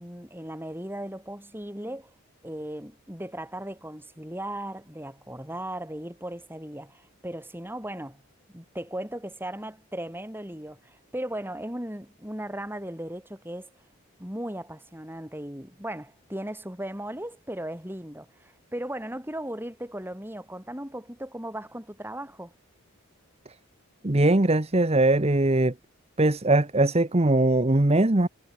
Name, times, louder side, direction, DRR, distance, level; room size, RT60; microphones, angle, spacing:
voice 1, 0.0-2.1 2.4-8.2 8.5-13.7 14.2-22.5, right 1 dB, 10° right, 7.2 m, -37 dB
voice 2, 24.0-25.7 26.2-28.3, right 2 dB, 30° right, 1.0 m, -21 dB
head